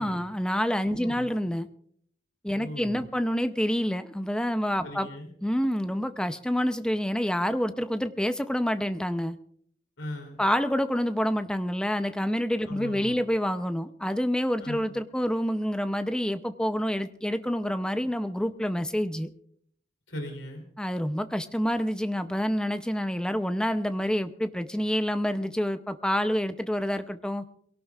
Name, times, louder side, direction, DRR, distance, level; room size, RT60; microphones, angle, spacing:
voice 1, 0.0-1.7 2.4-5.1 5.4-9.4 10.4-19.3 20.8-27.4, equal, 5° left, 10 dB, 0.5 m, -27 dB
voice 2, 0.9-1.3 2.5-3.1 4.8-5.3 10.0-10.4 12.6-13.2 14.6-14.9 20.1-20.7, left 1 dB, 85° left, 3 dB, 3.2 m, -39 dB
22.5 x 17.5 x 2.4 m, 0.64 s
head